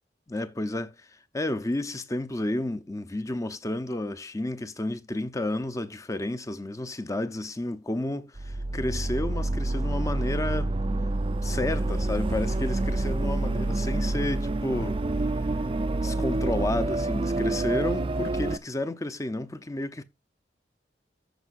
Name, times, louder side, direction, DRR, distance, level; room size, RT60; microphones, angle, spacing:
voice 1, 0.3-0.9 1.3-10.8 11.4-15.0 15.9-20.0, left 1 dB, 20° left, 0.7 m, -31 dB
sound 1, 8.4-18.6, right 2 dB, 30° right, 0.4 m, -27 dB
14.0 x 5.4 x 2.5 m
head